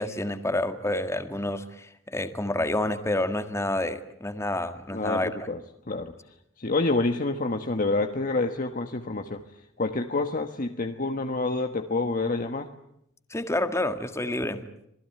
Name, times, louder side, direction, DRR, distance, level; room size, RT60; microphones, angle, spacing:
voice 1, 0.0-5.3 13.3-14.6, left 1 dB, 15° left, 8 dB, 1.6 m, -28 dB
voice 2, 4.9-5.6 5.9-6.1 6.6-9.4 9.8-12.7, left 3 dB, 45° left, 5 dB, 1.3 m, -27 dB
26.5 x 19.5 x 9.3 m, 0.77 s
head